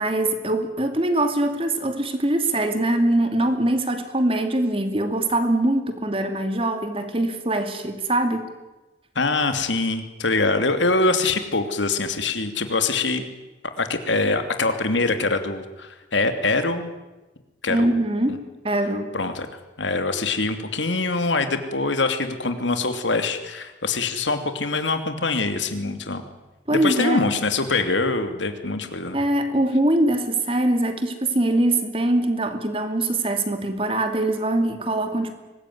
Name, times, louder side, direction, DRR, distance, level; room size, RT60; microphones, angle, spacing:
voice 1, 0.0-8.5 17.7-19.1 26.7-27.2 29.1-35.3, right 1 dB, 30° right, 7 dB, 2.5 m, -23 dB
voice 2, 9.1-13.2 13.8-16.9 17.6-17.9 18.3-18.4 19.1-19.5 19.8-26.2 26.7-29.2, left 3 dB, 90° left, 8 dB, 2.8 m, -24 dB
24.0 x 20.0 x 9.6 m, 1.1 s
head